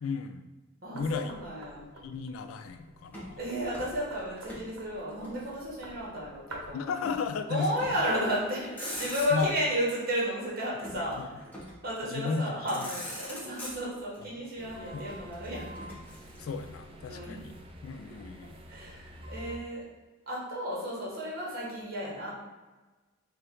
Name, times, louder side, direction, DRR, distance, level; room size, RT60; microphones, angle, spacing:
voice 1, 0.0-0.4 0.9-1.4 2.0-3.4 6.7-7.7 8.9-9.5 10.9-11.4 12.1-12.9 14.2-14.4 14.9-15.1 16.4-17.5 17.8-18.5, left 4 dB, 85° left, 8 dB, 0.3 m, -35 dB
voice 2, 0.8-1.9 3.4-6.9 7.5-11.4 11.8-15.7 17.1-17.4 18.6-19.8 20.3-22.3, equal, 45° right, -5 dB, 1.4 m, -33 dB
Knock, 1.0-6.9, right 2 dB, 85° right, 0.8 m, -49 dB
Motor vehicle (road), 3.1-4.7 5.0-6.1 7.0-7.3 7.7-8.1 8.6-9.6 10.8-11.9 12.4-12.5 12.7-14.2 15.1-16.7, equal, 10° left, 1.0 m, -43 dB
sound 1, 14.6-19.6, equal, 25° right, 0.4 m, -47 dB
4.4 x 2.5 x 3.8 m, 1.2 s
head